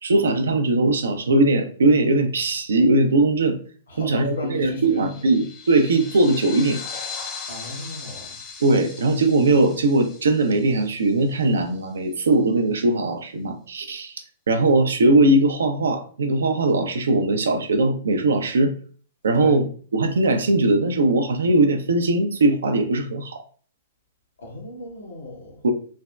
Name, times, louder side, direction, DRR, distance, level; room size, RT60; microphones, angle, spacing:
voice 1, 0.0-3.6 4.0-6.8 8.6-14.2 14.5-18.8 19.2-19.7 19.9-23.4 25.6-25.7, right 2 dB, 80° right, 6 dB, 0.4 m, -20 dB
voice 2, 3.9-5.0 7.5-8.4 19.3-19.6 24.4-25.6, left 2 dB, 80° left, 0 dB, 0.9 m, -34 dB
sound 1, 4.7-11.5, left 5 dB, 30° left, 0.5 m, -38 dB
3.3 x 2.1 x 2.3 m, 0.43 s
hypercardioid pair, 115°, 0 cm